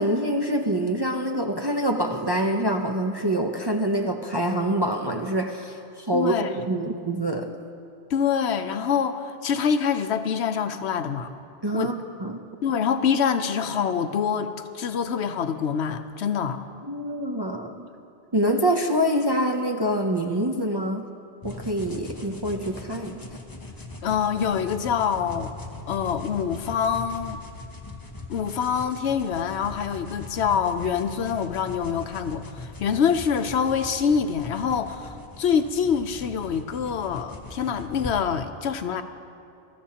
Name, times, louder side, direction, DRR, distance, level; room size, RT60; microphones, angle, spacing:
voice 1, 0.0-7.6 11.6-12.5 16.8-17.9 18.3-21.1 21.4-23.2, right 1 dB, 30° right, 3 dB, 0.5 m, -25 dB
voice 2, 6.1-6.5 8.1-11.3 11.7-12.0 12.6-16.6 24.0-25.5 25.9-27.4 28.3-39.0, left 7 dB, 70° left, 9 dB, 0.9 m, -25 dB
sound 1, 21.4-38.1, left 2 dB, 20° left, 0.9 m, -40 dB
23.5 x 13.0 x 2.9 m, 2.6 s
omnidirectional pair, 1.2 m